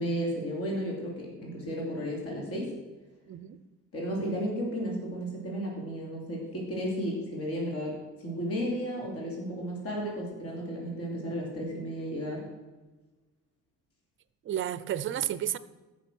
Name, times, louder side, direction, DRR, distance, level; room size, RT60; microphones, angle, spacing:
voice 1, 0.0-2.7 3.9-12.4, equal, 45° left, -1 dB, 3.0 m, -33 dB
voice 2, 3.3-3.6 14.4-15.6, right 11 dB, 40° right, 16 dB, 0.6 m, -31 dB
14.0 x 6.1 x 6.2 m, 1.2 s
cardioid pair, 160°, 32 cm